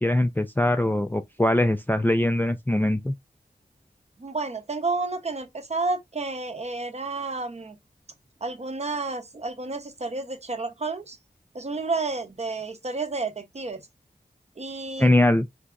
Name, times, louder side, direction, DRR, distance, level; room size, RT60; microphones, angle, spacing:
voice 1, 0.0-3.1 15.0-15.5, left 1 dB, 10° left, 0.3 m, -22 dB
voice 2, 4.2-7.8 8.4-11.2 11.5-13.8 14.6-15.1, right 3 dB, 40° right, 0.7 m, -31 dB
3.9 x 2.3 x 2.3 m
wide cardioid pair, 65°, 16 cm